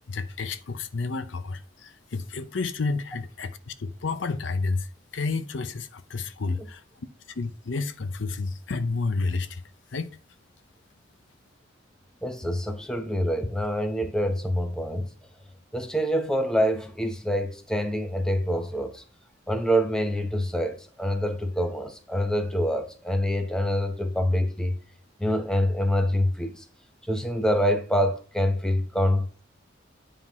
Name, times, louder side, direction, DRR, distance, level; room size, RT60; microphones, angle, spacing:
voice 1, 0.1-4.9 5.1-6.8 7.4-9.6 9.9-10.1, left 3 dB, 70° left, 0.6 m, -30 dB
voice 2, 12.2-15.1 15.7-19.0 19.5-24.8 25.2-26.6 27.1-29.4, equal, 5° left, 0.8 m, -26 dB
9.6 x 3.8 x 4.6 m
head